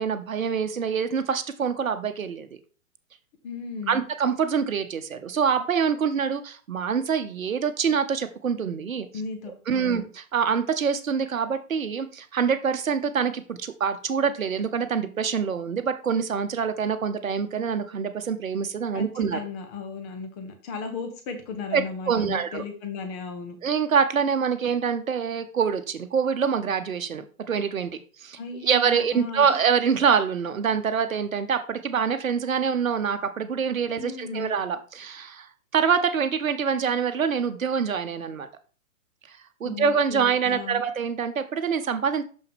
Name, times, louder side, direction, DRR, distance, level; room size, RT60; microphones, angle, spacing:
voice 1, 0.0-2.5 3.9-9.1 9.7-19.4 21.7-22.6 23.6-27.9 28.2-38.5 39.3-42.2, right 6 dB, 70° right, 9 dB, 0.9 m, -25 dB
voice 2, 3.4-4.0 9.1-10.1 18.9-23.6 28.4-29.6 34.0-34.5 39.6-40.8, left 4 dB, 10° left, 5 dB, 0.5 m, -36 dB
6.3 x 5.6 x 3.5 m, 0.40 s
figure-of-eight pair, 120°, 42 cm